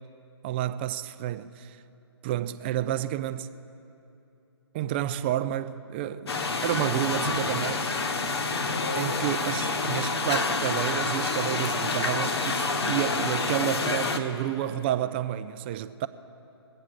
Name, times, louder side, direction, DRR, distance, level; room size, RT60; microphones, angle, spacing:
voice 1, 0.4-1.8 2.2-3.5 4.7-8.0 8.9-16.1, right 12 dB, 25° right, 0.4 m, -30 dB
sound 1, 6.3-14.2, left 3 dB, 65° left, 1.2 m, -28 dB
21.0 x 8.9 x 6.5 m
figure-of-eight pair, 140°, 14 cm